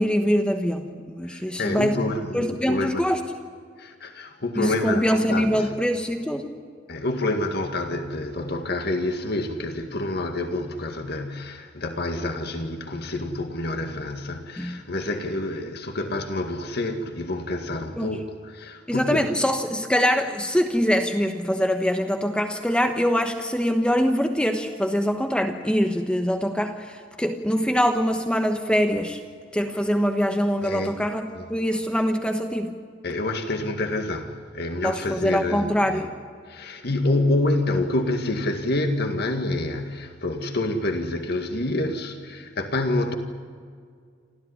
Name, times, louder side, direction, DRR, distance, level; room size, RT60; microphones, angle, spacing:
voice 1, 0.0-2.0 2.3-3.2 4.6-6.5 14.6-14.8 18.0-18.2 18.9-29.2 29.5-31.2 31.5-32.7 34.8-36.1, equal, 5° left, 1.1 m, -23 dB
voice 2, 1.2-3.1 3.8-5.7 6.9-19.2 30.6-31.0 31.3-31.5 33.0-36.1 36.5-43.2, left 2 dB, 60° left, 2.0 m, -27 dB
28.5 x 14.0 x 10.0 m
head